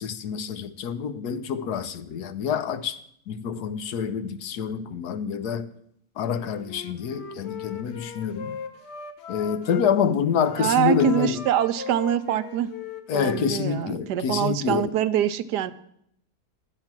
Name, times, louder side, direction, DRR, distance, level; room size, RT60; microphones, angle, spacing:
voice 1, 0.0-3.0 3.3-5.7 6.2-8.6 9.3-11.4 13.1-14.9, left 7 dB, 75° left, 1.2 m, -27 dB
Wind instrument woodwind instrument, 6.6-9.8 10.4-14.0, left 6 dB, 50° left, 1.0 m, -39 dB
voice 2, 10.6-12.7 13.1-15.7, right 11 dB, 80° right, 1.2 m, -24 dB
12.0 x 8.9 x 5.9 m
omnidirectional pair, 1.8 m